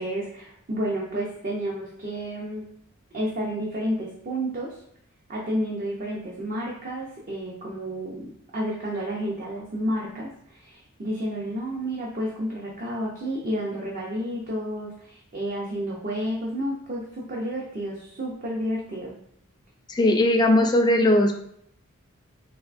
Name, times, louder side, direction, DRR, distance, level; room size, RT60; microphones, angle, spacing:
voice 1, 0.0-2.6 3.1-4.8 5.3-19.2 20.1-20.2, equal, 40° right, -3 dB, 0.5 m, -31 dB
voice 2, 19.9-21.4, left 1 dB, 20° left, 4 dB, 0.3 m, -19 dB
3.5 x 3.2 x 2.4 m, 0.69 s
head